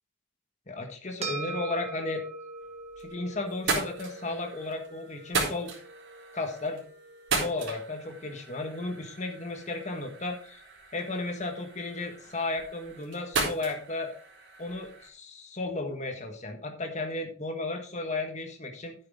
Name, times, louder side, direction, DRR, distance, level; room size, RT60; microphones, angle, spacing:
voice 1, 0.7-2.2 3.0-5.7 6.3-6.8 7.4-10.6 10.9-14.1 14.6-18.9, left 2 dB, 35° left, 4 dB, 1.5 m, -34 dB
sound 1, 1.2-9.8, right 3 dB, 30° right, 1.8 m, -43 dB
sound 2, 2.6-3.1 3.5-15.1, right 3 dB, 65° right, 4.1 m, -36 dB
11.5 x 9.1 x 3.6 m, 0.40 s
head